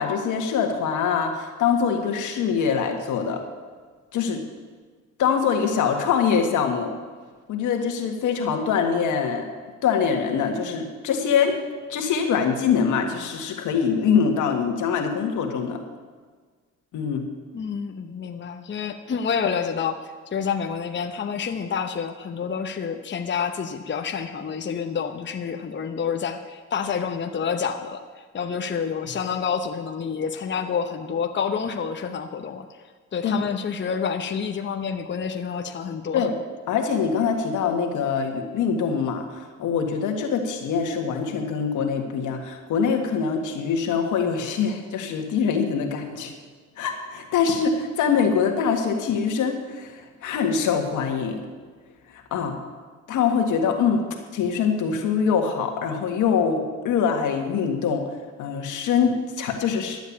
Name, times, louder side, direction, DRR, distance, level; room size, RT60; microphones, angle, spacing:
voice 1, 0.0-3.4 4.1-4.4 5.2-6.9 7.5-9.5 9.8-11.6 11.9-15.8 16.9-17.3 33.2-33.4 36.1-36.3 36.7-46.3 46.8-51.4 52.1-52.6 53.1-54.0 54.3-58.1 58.4-60.0, left 6 dB, 85° left, 3 dB, 1.8 m, -24 dB
voice 2, 17.5-20.0 20.3-28.0 28.3-32.7 33.1-36.3, left 6 dB, 40° left, 5 dB, 0.9 m, -28 dB
12.0 x 8.1 x 8.5 m, 1.5 s
cardioid pair, 90°, 30 cm